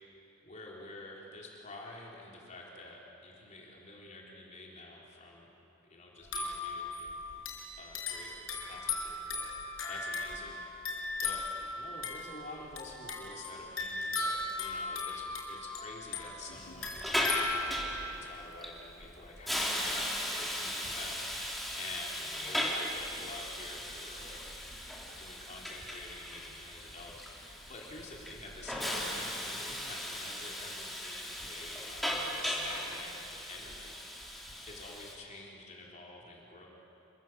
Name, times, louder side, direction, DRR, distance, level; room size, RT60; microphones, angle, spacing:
voice 1, 0.4-5.5 5.9-7.2 7.8-9.5 9.9-10.6 11.2-21.1 21.8-24.4 25.2-33.1 33.5-34.0 34.7-36.7, left 2 dB, 35° left, -3 dB, 4.4 m, -48 dB
sound 1, 6.2-18.1, left 3 dB, 90° left, 5.7 m, -38 dB
Hiss, 16.5-35.2, equal, ahead, 3.4 m, -37 dB
28.0 x 24.5 x 7.8 m, 3.0 s
head